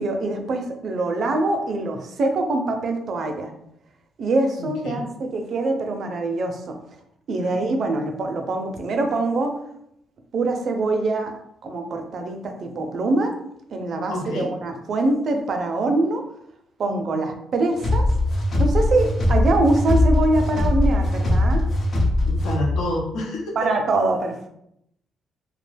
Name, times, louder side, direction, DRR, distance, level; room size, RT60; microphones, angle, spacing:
voice 1, 0.0-3.5 4.2-6.8 7.3-9.6 10.3-13.3 13.7-16.2 16.8-18.0 18.6-21.6 23.6-24.5, right 2 dB, 55° right, 4 dB, 0.5 m, -24 dB
voice 2, 4.6-5.0 7.4-7.7 14.1-14.5 16.9-17.3 22.2-23.5, left 1 dB, 80° left, -3 dB, 0.9 m, -29 dB
sound 1, 17.8-22.9, left 1 dB, 50° left, 0.7 m, -20 dB
2.4 x 2.2 x 3.2 m, 0.76 s
cardioid pair, 90°, 0 cm